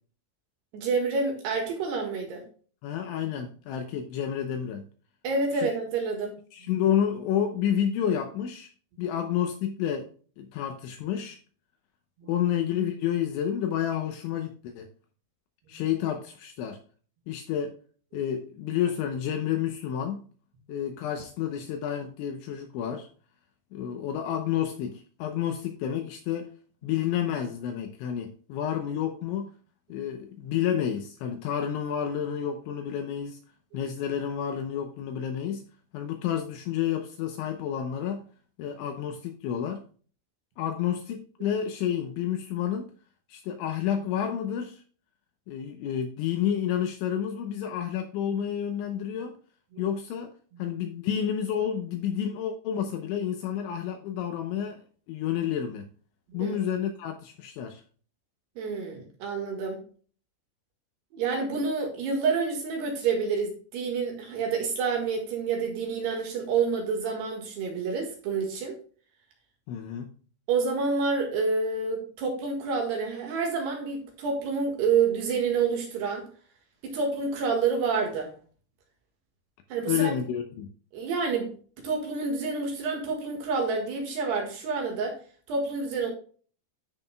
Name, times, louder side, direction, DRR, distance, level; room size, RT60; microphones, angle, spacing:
voice 1, 0.7-2.4 5.2-6.4 12.2-12.3 15.7-15.8 18.1-18.2 30.4-30.5 49.7-49.9 56.3-56.6 58.6-59.8 61.1-68.7 70.5-76.3 76.8-78.3 79.7-80.2 80.9-81.6 81.8-85.2 85.5-86.1, right 4 dB, 65° right, 3.2 m, -28 dB
voice 2, 2.8-4.9 5.5-5.7 6.5-8.7 9.0-10.1 10.4-11.4 12.3-14.9 15.7-16.8 17.3-17.7 18.1-20.3 20.7-23.1 23.7-26.5 26.8-29.5 29.9-33.4 33.7-35.7 35.9-38.3 38.6-39.8 40.6-42.9 43.3-44.8 45.5-49.4 49.8-50.3 50.6-55.9 56.3-57.8 69.7-70.1 79.9-80.7, left 9 dB, 80° left, 2.8 m, -30 dB
13.0 x 5.8 x 2.2 m
omnidirectional pair, 6.0 m